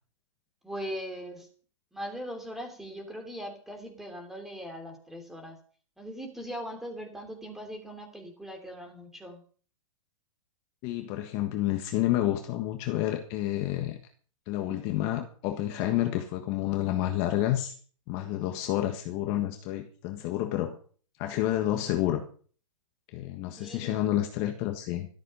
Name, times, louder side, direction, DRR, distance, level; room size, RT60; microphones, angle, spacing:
voice 1, 0.6-1.5 1.9-5.6 6.0-9.4 23.6-24.1, equal, ahead, 5 dB, 3.1 m, -40 dB
voice 2, 10.8-14.0 14.5-17.7 18.1-20.8 21.2-22.3 23.1-25.1, left 13 dB, 30° left, 5 dB, 1.5 m, -29 dB
13.5 x 13.0 x 5.6 m, 0.43 s
hypercardioid pair, 160°, 17 cm